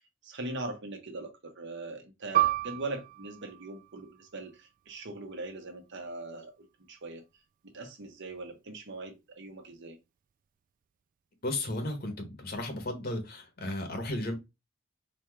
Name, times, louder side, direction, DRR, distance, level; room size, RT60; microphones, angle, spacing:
voice 1, 0.2-7.2 7.6-10.0, right 2 dB, 65° right, 1.1 m, -41 dB
Piano, 2.3-7.4 7.7-7.9 8.7-9.0, right 14 dB, 45° right, 0.3 m, -33 dB
voice 2, 11.4-14.3, left 1 dB, 50° left, 1.3 m, -34 dB
4.4 x 2.4 x 4.5 m
head